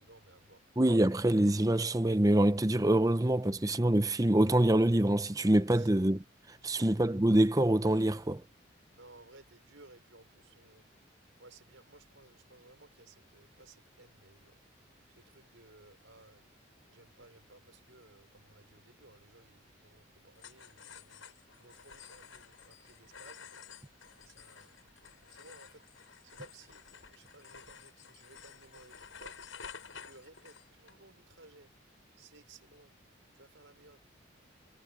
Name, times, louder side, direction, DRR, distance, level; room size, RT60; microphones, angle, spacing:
voice 1, 0.0-0.6 5.7-5.9 6.5-6.9 8.9-10.8 11.4-14.6 15.1-16.4 16.9-21.2 21.6-23.4 24.2-24.8 25.1-25.8 26.2-29.4 30.0-31.7 32.2-32.9 33.3-34.0, right 2 dB, 75° right, 4.8 m, -58 dB
voice 2, 0.8-6.2 6.6-8.4, right 1 dB, 15° right, 0.7 m, -25 dB
sound 1, 20.4-30.9, left 6 dB, 80° left, 7.3 m, -52 dB
head